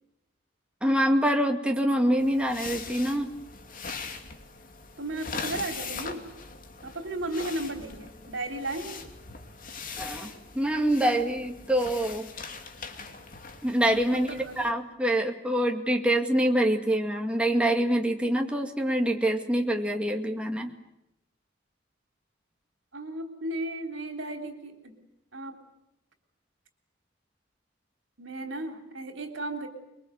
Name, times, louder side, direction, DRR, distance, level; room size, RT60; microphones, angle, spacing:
voice 1, 0.8-3.3 10.0-10.3 10.5-12.3 13.6-14.3 14.6-20.7, right 1 dB, 5° right, 3 dB, 2.1 m, -25 dB
sound 1, 2.2-14.7, left 4 dB, 45° left, 2.5 m, -41 dB
voice 2, 5.0-6.3 6.8-9.0 14.1-14.7 22.9-25.0 25.3-25.6 28.2-29.7, right 2 dB, 70° right, 5 dB, 3.5 m, -35 dB
25.5 x 23.0 x 8.1 m, 0.87 s
head